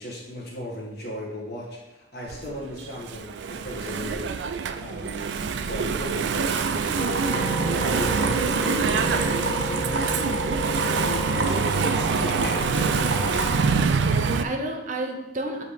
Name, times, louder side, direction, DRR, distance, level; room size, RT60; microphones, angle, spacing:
voice 1, 0.0-4.4 4.8-5.3 5.6-7.4 7.9-11.7 12.1-13.4, left 1 dB, 55° left, -3 dB, 1.6 m, -36 dB
Engine / Mechanisms, 2.3-14.4, right 5 dB, 70° right, 0.3 m, -25 dB
sound 1, 6.3-13.6, right 3 dB, 85° right, 0.8 m, -31 dB
sound 2, 7.0-13.8, left 4 dB, 35° left, 0.3 m, -34 dB
voice 2, 13.2-15.6, right 2 dB, 45° right, 3 dB, 0.7 m, -32 dB
7.4 x 2.9 x 5.0 m, 1.0 s
head